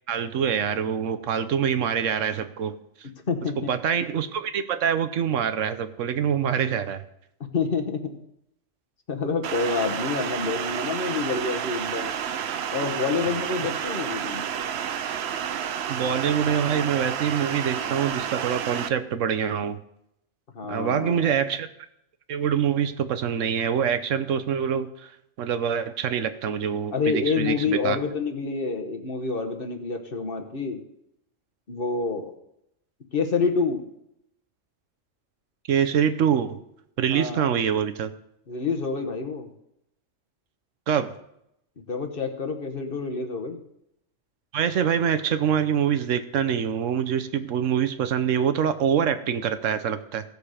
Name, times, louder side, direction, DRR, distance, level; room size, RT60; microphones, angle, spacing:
voice 1, 0.1-2.8 3.7-7.0 15.9-19.8 20.7-21.7 22.3-25.1 25.4-28.0 35.7-36.6 37.0-38.1 40.9-41.1 44.5-50.2, right 8 dB, 85° right, 10 dB, 1.2 m, -25 dB
voice 2, 3.3-3.7 7.5-8.1 9.1-12.1 12.7-14.5 20.5-21.3 26.9-30.8 31.7-32.3 33.1-33.8 37.1-37.5 38.5-39.5 41.9-43.6, left 4 dB, 50° left, 5 dB, 1.4 m, -27 dB
sound 1, 9.4-18.9, right 8 dB, 65° right, 0.9 m, -30 dB
16.0 x 6.7 x 4.9 m, 0.78 s
omnidirectional pair, 1.3 m